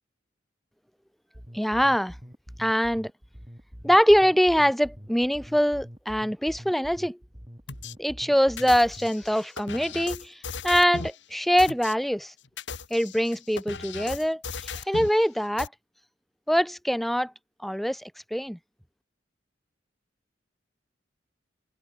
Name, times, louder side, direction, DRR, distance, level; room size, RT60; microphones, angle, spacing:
sound 1, 1.3-9.3, equal, 20° right, 6.6 m, -45 dB
voice 1, 1.5-2.1 2.6-3.1 3.8-7.2 8.0-10.4 10.6-12.3 12.9-15.7 16.5-17.3 17.6-18.6, equal, ahead, 0.4 m, -23 dB
sound 2, 7.7-7.9 8.6-11.2 11.6-11.9 12.4-15.2 15.6-15.7, left 4 dB, 70° left, 1.8 m, -37 dB
head